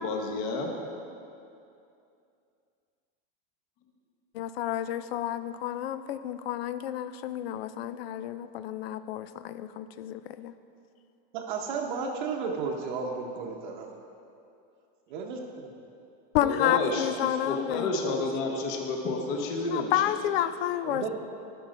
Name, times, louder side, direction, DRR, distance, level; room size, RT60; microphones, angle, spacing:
voice 1, 0.0-0.7 16.4-20.0, left 3 dB, 35° left, 2 dB, 0.9 m, -30 dB
voice 2, 4.3-10.5 16.3-17.9 19.7-21.1, left 11 dB, 85° left, 13 dB, 0.5 m, -30 dB
voice 3, 11.3-13.9 15.1-15.7 20.8-21.1, right 5 dB, 55° right, 1 dB, 0.8 m, -33 dB
11.5 x 5.4 x 5.0 m, 2.6 s
supercardioid pair, 180°, 29 cm